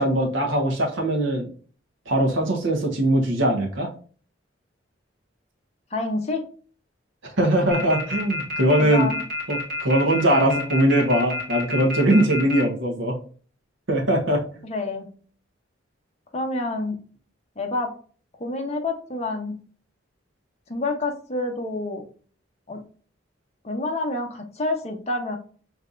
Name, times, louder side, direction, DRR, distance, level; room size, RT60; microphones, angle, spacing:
voice 1, 0.0-1.5 2.1-3.9 7.2-9.1 9.5-13.2 13.9-14.6, right 1 dB, 75° right, 0 dB, 1.3 m, -21 dB
voice 2, 5.9-6.5 7.6-7.9 8.8-9.2 14.6-15.1 16.3-16.9 17.6-17.9 18.4-19.5 20.7-22.0 22.7-22.8 23.6-25.4, left 2 dB, 35° left, 3 dB, 0.8 m, -28 dB
sound 1, 7.7-12.6, left 1 dB, 50° right, 1.8 m, -29 dB
5.5 x 3.3 x 2.5 m, 0.42 s
head